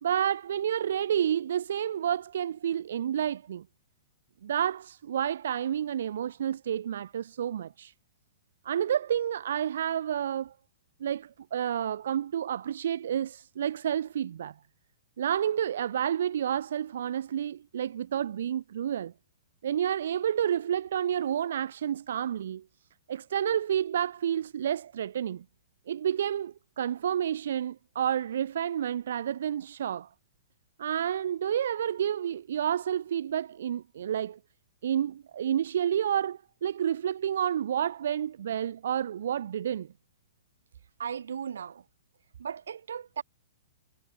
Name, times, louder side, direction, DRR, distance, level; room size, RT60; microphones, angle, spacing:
voice 1, 0.0-3.6 4.4-7.9 8.6-10.5 11.0-14.5 15.2-19.1 19.6-22.6 23.1-25.4 25.9-30.1 30.8-34.4 34.8-39.9, right 9 dB, 70° right, 0.7 m, -30 dB
voice 2, 41.0-41.8 42.4-43.2, right 7 dB, 90° right, 2.6 m, -36 dB
hypercardioid pair, 160°, 0 cm